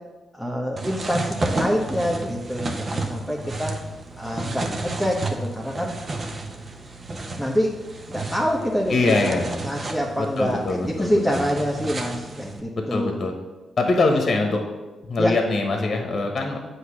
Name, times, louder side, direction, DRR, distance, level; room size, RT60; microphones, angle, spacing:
voice 1, 0.3-3.7 4.2-6.0 7.4-7.7 8.1-13.2 14.0-14.4 15.2-15.3, equal, ahead, -2 dB, 1.1 m, -26 dB
sound 1, 0.8-12.6, right 2 dB, 45° right, 0.9 m, -32 dB
voice 2, 8.9-9.6 10.4-11.5 12.9-13.3 13.8-14.6 15.1-16.6, left 2 dB, 50° left, 3 dB, 1.1 m, -23 dB
7.9 x 2.8 x 6.0 m, 1.2 s
hypercardioid pair, 45°, 0 cm